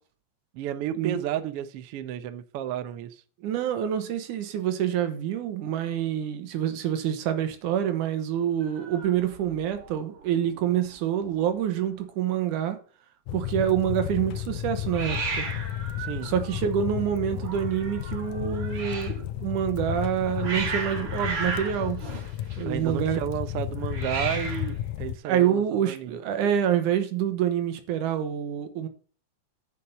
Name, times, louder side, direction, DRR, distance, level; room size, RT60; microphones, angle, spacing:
voice 1, 0.5-3.1 16.0-16.3 22.6-26.1, right 11 dB, 70° right, 1.4 m, -32 dB
voice 2, 3.4-12.8 13.3-15.5 16.2-22.0 22.6-23.2 25.2-28.9, right 10 dB, 85° right, 2.7 m, -27 dB
Hiss, 8.6-10.0 10.2-10.7 10.9-11.0 11.2-11.9 14.9-19.2 20.0-22.9 23.8-24.8, right 4 dB, 50° right, 2.8 m, -35 dB
sound 1, 13.3-25.2, left 12 dB, 80° left, 2.1 m, -33 dB
9.7 x 6.3 x 5.5 m
omnidirectional pair, 3.5 m